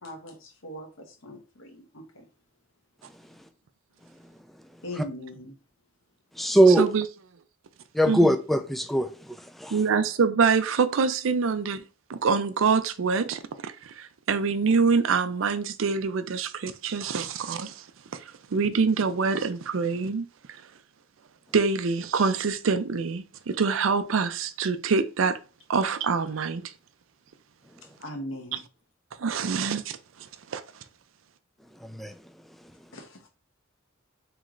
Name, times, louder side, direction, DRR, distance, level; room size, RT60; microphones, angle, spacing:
voice 1, 0.0-2.2 4.8-5.5 28.0-28.6 32.9-33.1, left 1 dB, 85° left, 1.1 m, -40 dB
voice 2, 6.4-6.9 7.9-9.1 9.6-9.7 31.9-32.1, right 1 dB, ahead, 0.3 m, -20 dB
voice 3, 9.7-11.8 12.1-17.8 18.1-18.2 18.5-20.3 21.5-25.4 25.7-26.7 28.5-28.6 29.2-30.0 30.5-30.6, right 5 dB, 70° right, 0.5 m, -25 dB
3.2 x 3.1 x 3.7 m
head